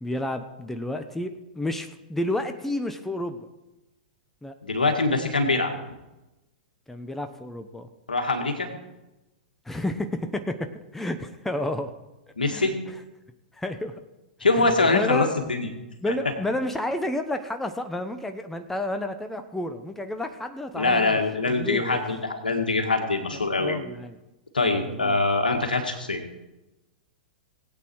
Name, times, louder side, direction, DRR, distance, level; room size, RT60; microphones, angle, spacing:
voice 1, 0.0-3.4 4.4-4.5 6.9-7.9 9.6-10.6 10.9-11.9 12.5-12.7 13.5-13.9 14.6-15.3 16.0-21.2 21.5-22.0 23.5-24.2 24.9-25.2, left 1 dB, 5° left, 8 dB, 0.9 m, -30 dB
voice 2, 4.6-5.7 8.1-8.7 12.4-12.7 14.4-15.7 16.1-16.2 20.7-23.8 24.5-26.2, left 3 dB, 80° left, 5 dB, 2.1 m, -23 dB
18.5 x 8.5 x 4.7 m, 1.0 s
figure-of-eight pair, 105°, 5 cm